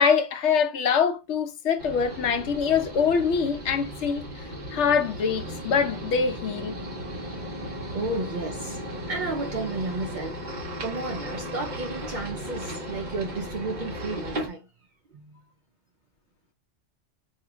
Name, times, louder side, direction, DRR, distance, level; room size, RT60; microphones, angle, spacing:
voice 1, 0.0-4.2 4.7-6.8, left 6 dB, 75° left, 0.9 m, -24 dB
sound 1, 1.8-14.5, equal, 40° right, 1.1 m, -36 dB
voice 2, 7.9-14.7 15.1-15.5, right 3 dB, 60° right, 0.5 m, -33 dB
4.3 x 2.4 x 2.9 m
omnidirectional pair, 1.2 m